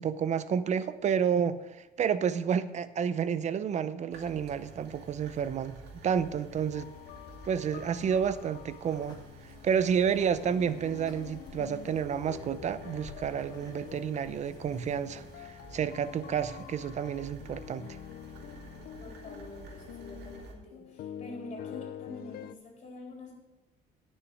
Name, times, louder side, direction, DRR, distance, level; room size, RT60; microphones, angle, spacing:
voice 1, 0.0-5.8 6.0-6.9 7.4-9.2 9.6-18.0, right 7 dB, 45° right, 14 dB, 0.7 m, -30 dB
sound 1, 4.1-20.5, right 2 dB, 75° right, 2.4 m, -51 dB
sound 2, 6.7-22.6, left 10 dB, 65° left, 0.5 m, -46 dB
sound 3, 8.8-15.5, left 2 dB, 25° left, 2.1 m, -55 dB
voice 2, 19.0-23.3, left 2 dB, 40° left, 0 dB, 3.7 m, -46 dB
11.0 x 6.5 x 6.3 m, 1.0 s
cardioid pair, 110°, 17 cm